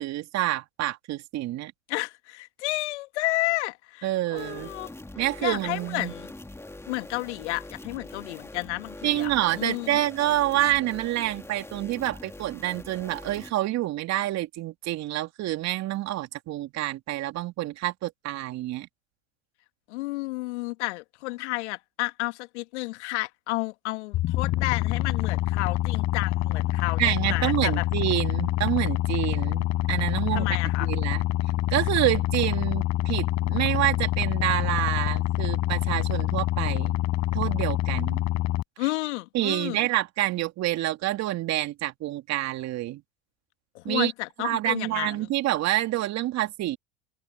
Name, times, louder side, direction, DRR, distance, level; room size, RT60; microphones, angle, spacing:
voice 1, 0.0-1.7 4.0-4.7 5.2-6.1 9.0-18.9 27.0-31.2 31.7-37.0 37.3-38.2 39.3-43.0 43.8-44.1 44.4-46.8, right 15 dB, 50° right, 3.0 m, -27 dB
voice 2, 1.9-4.9 5.4-6.3 6.9-10.0 19.9-27.8 30.3-30.9 38.8-39.9 43.7-45.3, left 21 dB, 70° left, 2.1 m, -31 dB
sound 1, 4.4-13.5, left 2 dB, 5° left, 2.8 m, -43 dB
sound 2, 24.1-38.6, left 15 dB, 50° left, 5.1 m, -26 dB
hypercardioid pair, 85°, 36 cm